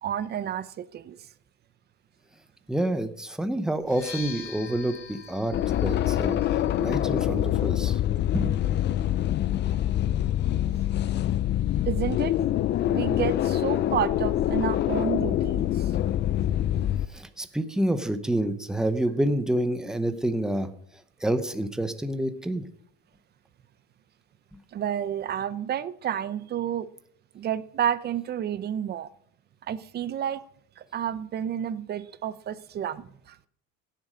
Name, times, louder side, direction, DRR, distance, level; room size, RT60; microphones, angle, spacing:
voice 1, 0.0-1.3 11.9-12.3 12.9-15.9 24.7-26.9 27.3-29.1 29.7-30.4 30.8-33.4, right 9 dB, 35° right, 16 dB, 0.7 m, -30 dB
voice 2, 2.7-6.4 6.8-8.0 8.3-8.6 17.1-20.7 21.2-22.7, right 1 dB, ahead, 9 dB, 0.8 m, -28 dB
sound 1, 3.8-11.6, left 6 dB, 70° left, 3.9 m, -47 dB
sound 2, 5.5-17.1, left 12 dB, 40° left, 0.4 m, -25 dB
16.5 x 7.5 x 5.1 m, 0.65 s
cardioid pair, 150°, 29 cm